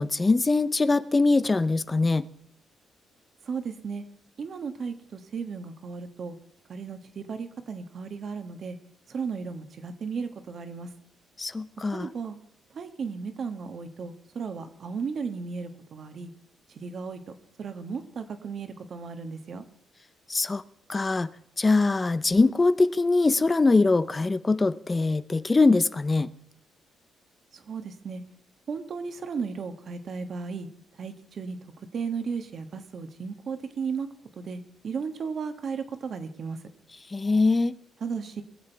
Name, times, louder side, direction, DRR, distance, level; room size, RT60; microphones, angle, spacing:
voice 1, 0.0-2.2 11.4-12.1 20.3-20.6 20.9-21.3 21.6-26.3 37.1-37.7, left 3 dB, 25° left, 14 dB, 0.6 m, -22 dB
voice 2, 3.4-4.0 4.4-6.4 6.7-8.8 9.1-10.9 11.9-12.4 12.7-16.3 16.7-19.6 27.5-28.2 28.7-30.7 31.0-31.6 31.9-34.1 34.3-36.6 38.0-38.4, right 5 dB, 55° right, 8 dB, 1.4 m, -35 dB
22.0 x 7.6 x 4.6 m, 0.69 s
cardioid pair, 90°, 0 cm